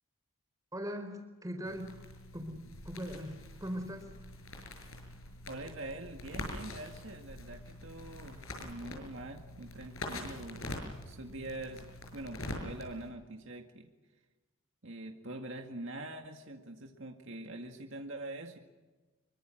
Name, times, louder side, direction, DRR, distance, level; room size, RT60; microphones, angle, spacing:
voice 1, 0.7-2.0 2.3-4.1, equal, 15° right, 5 dB, 4.5 m, -40 dB
sound 1, 1.6-13.1, left 1 dB, 80° left, 6.7 m, -45 dB
voice 2, 5.5-10.8 11.1-13.9 14.8-18.6, right 2 dB, 60° right, 3 dB, 2.0 m, -44 dB
26.5 x 23.5 x 6.5 m, 1.2 s
head